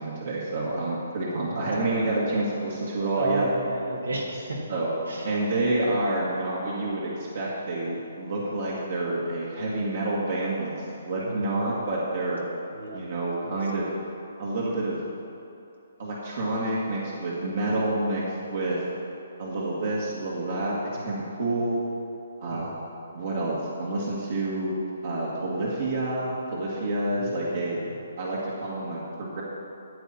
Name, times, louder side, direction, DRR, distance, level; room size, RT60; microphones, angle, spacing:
voice 1, 0.0-3.5 4.7-4.9 5.2-12.4 12.9-13.9 14.4-15.0 16.0-18.2 18.5-18.8 19.4-21.8 22.4-22.8 23.1-24.8 25.0-27.8 28.2-29.4, right 2 dB, 65° right, -6 dB, 2.1 m, -28 dB
voice 2, 1.3-2.2 3.1-4.6 5.1-5.3 11.2-11.7 12.7-13.0 13.4-13.6 17.6-17.9 20.9-21.1 22.5-22.7 27.1-28.0, right 2 dB, 90° right, -1 dB, 2.2 m, -34 dB
13.5 x 8.7 x 4.2 m, 2.8 s
hypercardioid pair, 145°, 0 cm